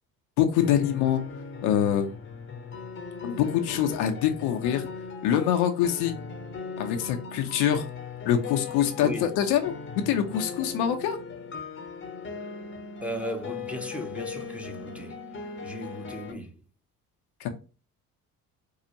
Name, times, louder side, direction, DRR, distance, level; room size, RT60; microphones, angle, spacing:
voice 1, 0.4-1.3 1.6-2.1 3.2-4.9 5.2-6.2 6.8-7.9 8.3-11.2 17.4-17.5, left 9 dB, 60° left, 0.7 m, -25 dB
sound 1, 0.6-16.3, left 5 dB, 25° left, 0.8 m, -39 dB
voice 2, 13.0-15.1 15.6-16.5, equal, 5° right, 0.9 m, -36 dB
4.5 x 2.4 x 2.9 m
figure-of-eight pair, 50°, 45 cm